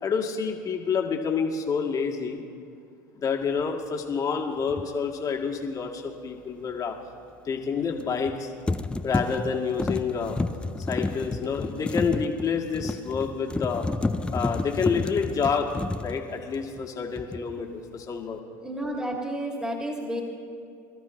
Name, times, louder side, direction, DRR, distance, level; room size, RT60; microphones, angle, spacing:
voice 1, 0.0-2.4 3.2-7.0 7.4-8.5 9.0-10.4 10.9-13.8 14.3-15.7 16.0-18.4, left 6 dB, 40° left, 1 dB, 2.0 m, -28 dB
sound 1, 4.7-4.9 8.0-8.4 8.7-16.9 17.2-17.6, left 2 dB, 10° left, 0.5 m, -30 dB
voice 2, 18.6-20.2, right 1 dB, 10° right, -1 dB, 2.5 m, -31 dB
22.5 x 12.5 x 3.2 m, 2.5 s
hypercardioid pair, 85°, 9 cm